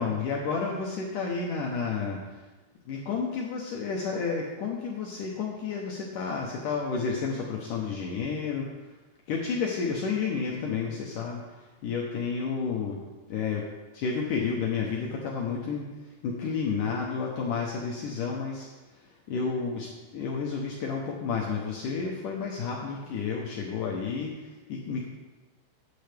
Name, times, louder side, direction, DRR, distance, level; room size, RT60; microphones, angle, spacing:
voice 1, 0.0-2.5 2.9-9.0 9.3-13.0 13.3-13.7 13.9-25.1, left 5 dB, 85° left, -2 dB, 1.8 m, -31 dB
14.5 x 9.5 x 3.5 m, 1.2 s
omnidirectional pair, 5.3 m